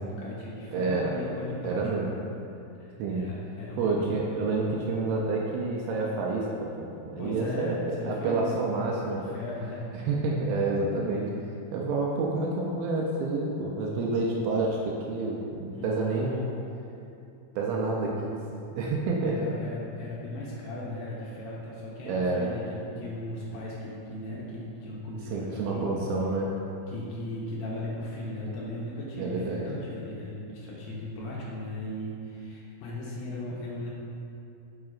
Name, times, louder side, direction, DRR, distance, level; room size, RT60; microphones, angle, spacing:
voice 1, 0.0-2.1 2.8-3.9 7.2-8.5 9.2-9.9 15.8-16.5 19.2-25.9 26.9-33.9, left 1 dB, 75° left, -5 dB, 2.3 m, -37 dB
voice 2, 0.7-1.1 1.6-2.1 3.0-3.3 3.8-6.5 6.8-9.2 9.9-11.3 11.7-16.4 17.6-18.4 18.8-19.4 22.1-22.5 25.3-26.5 29.2-29.7, right 3 dB, 80° right, -2 dB, 2.2 m, -28 dB
7.6 x 5.8 x 2.4 m, 2.7 s
omnidirectional pair, 4.6 m